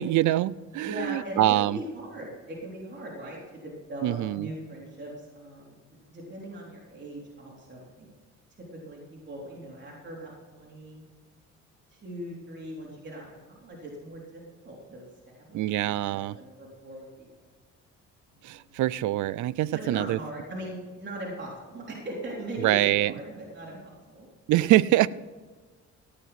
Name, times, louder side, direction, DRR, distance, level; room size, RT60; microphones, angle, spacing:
voice 1, 0.0-1.8 4.0-4.5 15.5-16.3 18.4-20.2 22.6-23.1 24.5-25.1, right 14 dB, 75° right, 19 dB, 0.5 m, -24 dB
voice 2, 0.8-8.1 8.7-11.0 11.9-15.0 15.3-17.3 18.3-18.8 19.7-24.3, right 1 dB, 35° right, -3 dB, 3.8 m, -40 dB
15.5 x 9.3 x 5.8 m, 1.4 s
cardioid pair, 90°, 30 cm